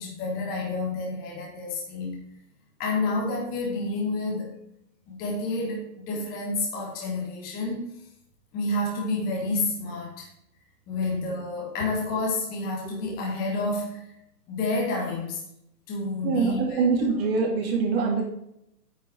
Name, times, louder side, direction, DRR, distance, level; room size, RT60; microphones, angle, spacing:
voice 1, 0.0-2.2 2.8-4.5 5.1-7.9 8.5-10.3 10.9-14.0 14.5-15.4 15.9-16.8, left 2 dB, 20° left, -2 dB, 1.8 m, -29 dB
voice 2, 16.2-18.2, right 4 dB, 35° right, 0 dB, 2.5 m, -24 dB
9.1 x 5.7 x 4.4 m, 0.77 s
hypercardioid pair, 145°, 49 cm